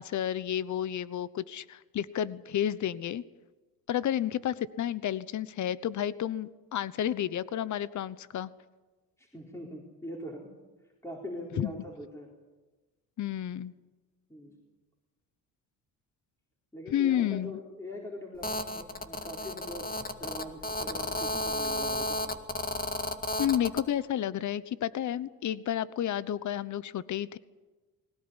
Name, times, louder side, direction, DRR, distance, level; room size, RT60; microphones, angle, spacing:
voice 1, 0.0-3.2 3.9-8.5 11.6-11.7 13.2-13.7 16.9-17.6 23.4-27.4, left 11 dB, 55° left, 17 dB, 1.0 m, -31 dB
voice 2, 9.2-10.5 11.0-12.3 14.3-14.6 16.7-19.8 20.2-22.2, left 1 dB, 10° left, -1 dB, 4.4 m, -42 dB
Telephone, 18.4-23.8, left 1 dB, 25° left, 2.0 m, -33 dB
20.5 x 18.5 x 9.9 m, 1.2 s
cardioid pair, 100°, 36 cm